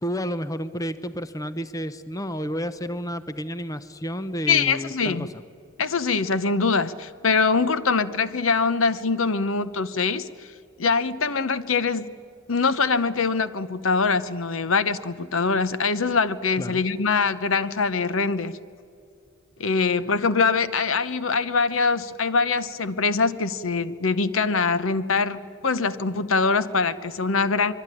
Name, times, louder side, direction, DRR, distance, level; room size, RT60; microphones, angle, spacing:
voice 1, 0.0-5.3 16.6-16.8, equal, 15° left, 12 dB, 0.7 m, -31 dB
voice 2, 4.5-5.3 5.8-10.3 10.8-12.1 12.5-18.5 19.6-27.7, left 4 dB, 70° left, 14 dB, 0.9 m, -23 dB
25.0 x 23.5 x 9.9 m, 2.6 s
head